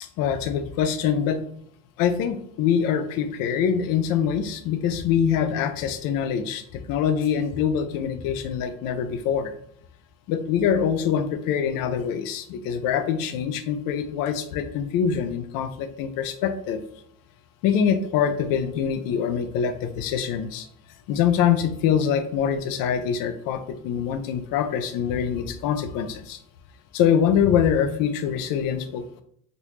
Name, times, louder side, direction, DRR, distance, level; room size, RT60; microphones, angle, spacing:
voice 1, 0.0-1.4 2.0-9.5 10.3-16.8 17.6-20.7 21.1-26.4 26.9-29.2, left 8 dB, 65° left, 10 dB, 0.5 m, -24 dB
3.4 x 2.5 x 3.0 m, 0.67 s
supercardioid pair, 100°, 37 cm